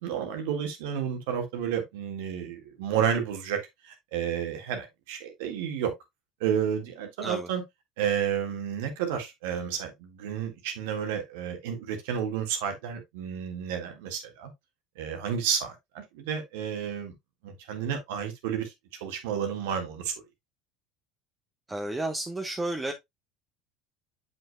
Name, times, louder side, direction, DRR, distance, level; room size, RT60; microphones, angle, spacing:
voice 1, 0.0-5.9 6.4-7.6 8.0-14.5 15.0-17.1 17.4-18.7 19.0-20.1, right 8 dB, 75° right, 1.8 m, -31 dB
voice 2, 21.7-22.9, right 2 dB, 15° right, 1.0 m, -32 dB
7.6 x 5.6 x 2.3 m
hypercardioid pair, 80°, 0 cm